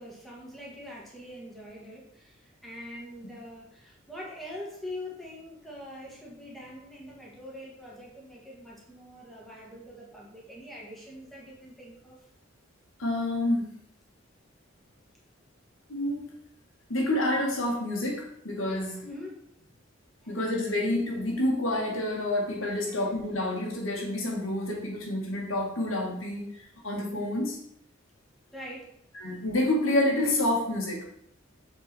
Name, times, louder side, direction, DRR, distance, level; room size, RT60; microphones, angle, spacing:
voice 1, 0.0-12.2 18.6-19.7 20.2-20.5 22.8-23.1 28.5-28.9, left 1 dB, ahead, -4 dB, 1.9 m, -44 dB
voice 2, 13.0-13.7 15.9-16.3 16.9-19.0 20.3-27.6 29.1-31.0, left 1 dB, 85° left, -1 dB, 2.0 m, -28 dB
7.3 x 4.7 x 4.4 m, 0.70 s
head